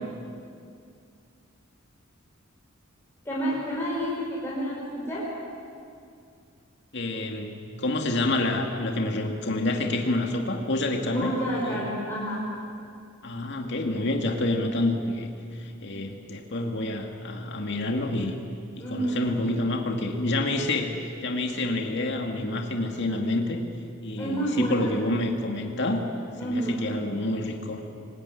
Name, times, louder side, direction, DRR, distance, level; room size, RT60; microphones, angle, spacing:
voice 1, 3.3-5.3 11.1-12.4 18.8-19.2 24.2-24.9 26.4-26.9, right 1 dB, 10° left, -7 dB, 5.4 m, -29 dB
voice 2, 6.9-11.4 11.6-11.8 13.2-18.3 18.8-23.6 24.0-26.1 26.4-27.8, left 2 dB, 55° left, 2 dB, 2.3 m, -28 dB
24.5 x 20.5 x 9.9 m, 2.4 s
head